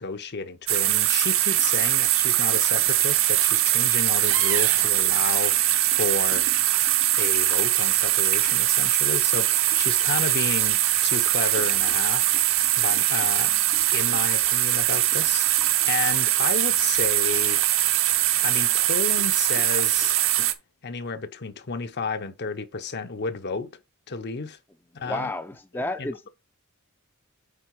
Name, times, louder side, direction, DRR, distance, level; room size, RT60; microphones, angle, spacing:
voice 1, 0.0-5.5 6.0-6.4 7.2-12.3 12.8-13.6 13.9-17.6 18.4-20.2 20.8-23.7 24.1-24.6 24.9-25.3 25.7-26.3, left 4 dB, 55° left, 0.8 m, -32 dB
sound 1, 0.7-20.5, right 13 dB, 65° right, 0.9 m, -22 dB
voice 2, 25.0-26.3, left 2 dB, 10° left, 0.5 m, -31 dB
8.6 x 3.9 x 4.7 m
head